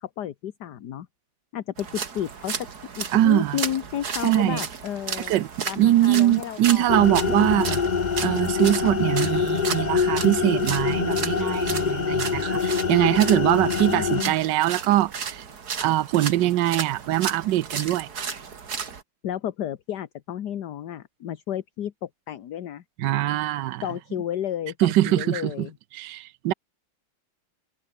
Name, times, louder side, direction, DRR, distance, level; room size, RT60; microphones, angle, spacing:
voice 1, 0.0-1.1 1.5-2.7 3.0-7.1 13.9-14.3 19.2-22.8 23.8-25.7, left 10 dB, 60° left, 1.6 m, -32 dB
sound 1, 1.8-19.0, right 6 dB, 55° right, 2.4 m, -34 dB
voice 2, 3.1-3.6 4.2-4.6 5.3-5.5 5.8-7.8 8.2-15.4 15.8-18.1 23.0-23.8 24.8-25.7 25.9-26.5, right 14 dB, 70° right, 1.3 m, -22 dB
sound 2, 6.9-14.2, left 6 dB, 40° left, 0.6 m, -25 dB
omnidirectional pair, 2.1 m